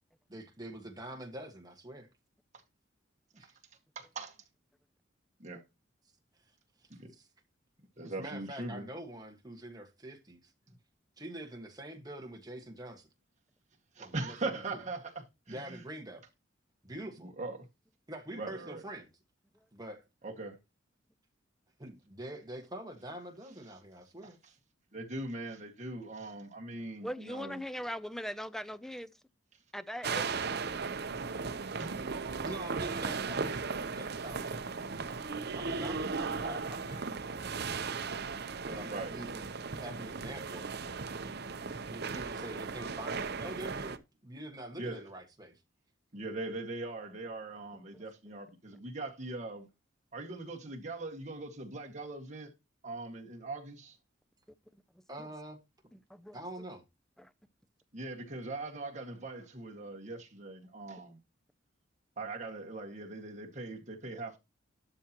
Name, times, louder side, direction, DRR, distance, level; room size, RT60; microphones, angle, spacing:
voice 1, 0.3-2.1 3.3-3.6 6.8-7.3 8.0-10.5 11.2-13.1 14.0-14.8 15.5-16.2 16.8-17.3 18.1-19.1 19.7-20.0 21.8-24.4 32.4-34.7 35.5-37.9 38.6-40.6 41.9-45.5 55.1-55.6 56.3-56.8, right 1 dB, 20° right, 1.6 m, -45 dB
voice 2, 4.0-4.4 5.4-5.6 6.9-7.1 8.0-8.8 14.0-15.1 15.5-15.8 17.2-17.6 18.4-18.8 20.2-20.6 24.9-27.6 31.7-31.9 38.9-39.1 44.8-45.0 46.1-49.7 50.1-52.5 52.8-54.0 57.9-61.2 62.2-64.4, right 2 dB, 40° right, 1.9 m, -41 dB
voice 3, 27.0-29.1 29.7-30.4 35.1-35.2 36.4-36.6 47.9-48.0 55.2-55.3 56.1-56.4 57.2-57.3, equal, ahead, 0.4 m, -40 dB
sound 1, 30.0-44.0, right 4 dB, 55° right, 0.8 m, -37 dB
12.0 x 5.7 x 3.0 m
head